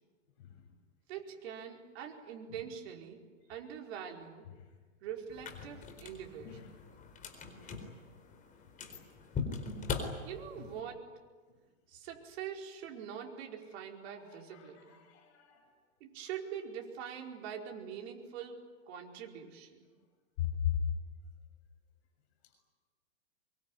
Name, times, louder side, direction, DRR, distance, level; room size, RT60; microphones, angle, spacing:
voice 1, 1.1-3.2 3.5-4.5 5.0-6.7 10.2-11.1 11.9-15.0 16.0-19.9, right 8 dB, 50° right, 1 dB, 4.8 m, -44 dB
sound 1, 5.3-10.8, left 4 dB, 20° left, 4.3 m, -41 dB
voice 2, 14.5-15.6 20.4-20.7, left 12 dB, 55° left, 4 dB, 6.6 m, -37 dB
24.5 x 23.5 x 10.0 m, 1.4 s
hypercardioid pair, 140°, 39 cm